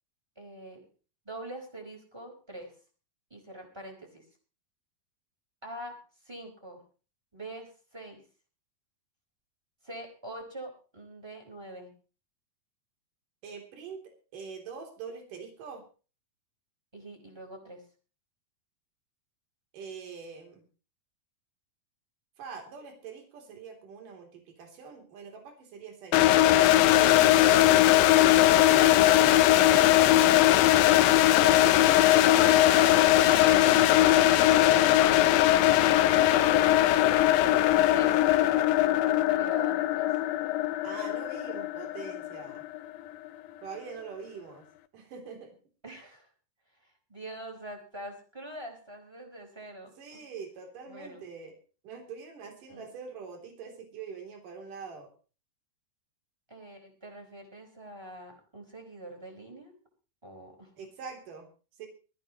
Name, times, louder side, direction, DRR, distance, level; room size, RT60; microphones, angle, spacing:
voice 1, 0.4-0.9 1.2-2.7 3.3-4.2 5.6-5.9 6.2-6.8 7.3-8.2 9.8-11.9 16.9-17.8 28.1-29.0 31.4-38.4 38.7-40.1 45.8-46.3 46.8-50.2 50.9-51.3 52.7-52.9 56.5-59.7 60.2-60.7, right 1 dB, 5° right, 3 dB, 4.3 m, -44 dB
voice 2, 13.4-14.0 14.3-15.8 19.7-20.6 22.4-26.2 29.5-30.6 40.8-42.6 43.6-44.6 44.9-45.6 50.0-51.5 51.8-55.1 60.8-61.5 61.8-61.9, right 5 dB, 60° right, 3 dB, 4.8 m, -44 dB
sound 1, 26.1-43.0, left 14 dB, 75° left, 2.5 m, -21 dB
22.5 x 14.5 x 3.1 m, 0.36 s
omnidirectional pair, 4.3 m